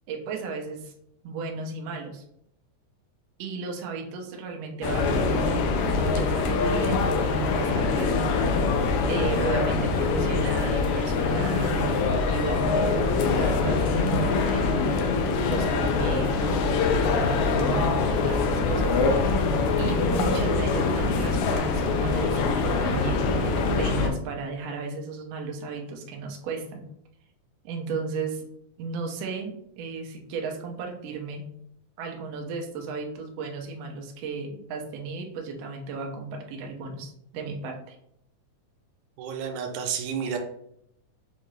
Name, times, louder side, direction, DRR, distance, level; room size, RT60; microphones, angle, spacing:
voice 1, 0.1-0.9 1.2-2.2 3.4-8.2 9.1-12.6 13.1-19.3 19.8-26.8 27.6-28.4 28.8-31.6 32.0-37.9, right 4 dB, 70° right, 1 dB, 1.6 m, -35 dB
sound 1, 4.8-24.1, left 4 dB, 80° left, 1.9 m, -24 dB
voice 2, 39.2-40.4, right 7 dB, 90° right, 4 dB, 2.1 m, -30 dB
6.4 x 2.5 x 3.1 m, 0.73 s
omnidirectional pair, 3.5 m